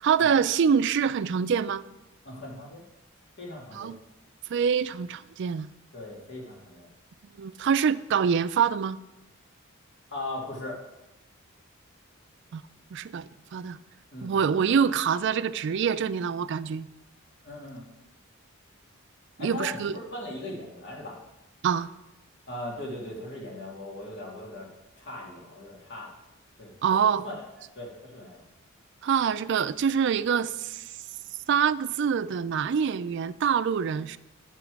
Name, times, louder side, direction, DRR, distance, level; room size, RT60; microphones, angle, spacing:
voice 1, 0.0-1.8 3.7-4.0 4.5-5.7 7.4-9.0 12.5-12.6 12.9-13.8 14.2-16.9 19.4-19.9 21.6-21.9 26.8-27.2 29.0-30.8 31.5-34.2, right 7 dB, 60° right, 15 dB, 0.3 m, -25 dB
voice 2, 2.3-2.8 3.4-3.9 5.9-6.9 10.1-10.8 14.1-14.6 17.4-17.8 19.4-21.2 22.5-24.7 25.0-26.1 26.6-26.7 27.2-27.3 27.8-28.4, left 1 dB, 55° left, -2 dB, 2.1 m, -39 dB
10.0 x 5.9 x 4.7 m, 0.96 s
head